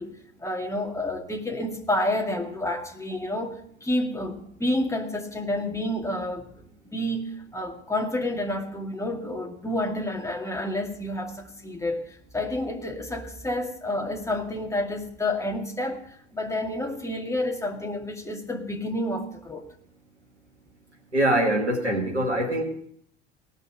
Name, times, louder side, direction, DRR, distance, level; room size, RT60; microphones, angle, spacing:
voice 1, 0.0-6.5 6.9-12.0 12.3-19.7, left 1 dB, 10° left, 0 dB, 2.3 m, -29 dB
voice 2, 21.1-22.6, right 1 dB, 85° right, 2 dB, 2.0 m, -23 dB
19.0 x 6.5 x 4.9 m, 0.64 s
figure-of-eight pair, 65°, 33 cm